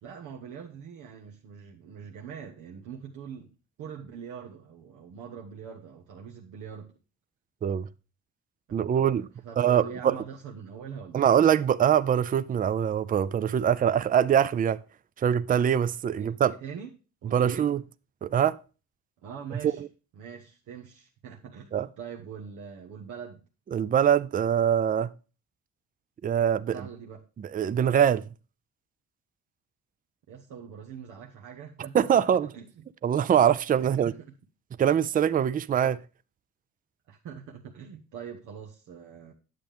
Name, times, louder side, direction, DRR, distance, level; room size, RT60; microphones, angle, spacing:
voice 1, 0.0-3.5 3.8-6.9 8.7-11.3 16.2-16.9 17.2-17.7 19.2-19.8 20.1-23.4 26.7-27.3 30.3-32.2 32.5-32.8 33.8-34.2 35.8-36.0 37.1-39.3, right 7 dB, 90° right, 1.1 m, -43 dB
voice 2, 8.7-9.3 9.6-10.2 11.1-14.8 15.2-16.5 17.3-17.8 18.2-18.6 21.7-21.9 23.7-25.1 26.2-26.8 27.4-28.2 31.9-32.5 33.0-34.1 34.8-36.0, right 9 dB, 30° right, 0.4 m, -23 dB
9.4 x 7.7 x 3.4 m
cardioid pair, 90°, 30 cm